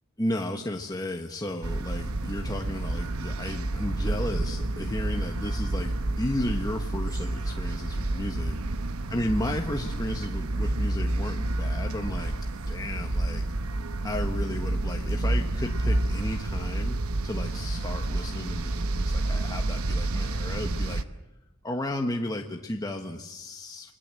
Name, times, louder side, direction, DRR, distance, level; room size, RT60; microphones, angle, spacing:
voice 1, 0.2-8.6 9.1-13.4 14.0-21.0 21.6-23.9, left 1 dB, 15° left, 3 dB, 1.3 m, -33 dB
sound 1, 1.6-21.0, right 2 dB, 70° right, 1.0 m, -29 dB
28.5 x 21.0 x 7.7 m, 0.97 s
head